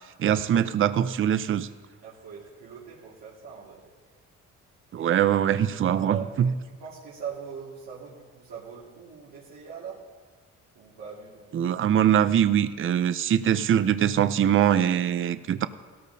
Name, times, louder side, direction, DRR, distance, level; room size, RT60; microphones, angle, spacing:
voice 1, 0.2-1.7 4.9-6.5 11.5-15.7, right 9 dB, 45° right, 13 dB, 0.5 m, -23 dB
voice 2, 2.0-3.9 5.0-5.2 5.7-10.0 10.8-11.5, right 6 dB, 90° right, -8 dB, 2.1 m, -41 dB
17.0 x 13.5 x 2.7 m, 1.5 s
cardioid pair, 90°, 30 cm